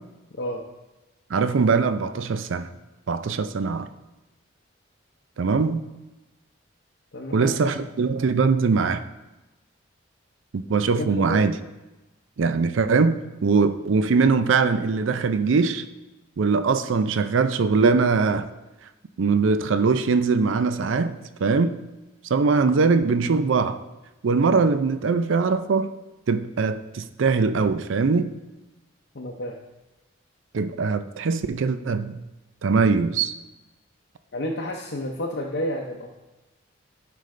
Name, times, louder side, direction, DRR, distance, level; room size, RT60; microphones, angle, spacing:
voice 1, 1.3-2.7 3.1-3.9 5.4-5.8 7.3-9.0 10.5-11.6 12.4-15.8 16.4-18.5 19.2-21.8 22.3-23.8 24.2-25.9 26.3-28.3 30.5-32.2 32.6-33.3, right 4 dB, 75° right, 11 dB, 0.4 m, -21 dB
voice 2, 7.1-7.7 10.9-11.4 29.1-29.6 34.3-36.1, left 1 dB, 55° left, -1 dB, 0.7 m, -30 dB
11.5 x 5.2 x 3.2 m, 1.1 s
head